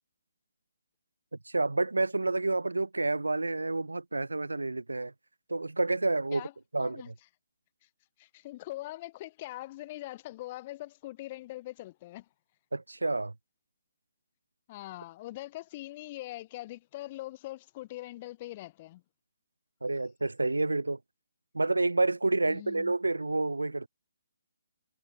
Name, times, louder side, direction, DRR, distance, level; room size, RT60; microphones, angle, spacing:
voice 1, 1.5-5.1 5.5-6.5 6.7-7.1 12.7-13.3 19.8-21.0 21.5-23.9, right 2 dB, 80° right, 0.6 m, -29 dB
voice 2, 6.8-7.1 8.2-12.3 14.7-19.0 22.5-22.9, left 17 dB, 30° left, 0.4 m, -42 dB
figure-of-eight pair, 140°, 0 cm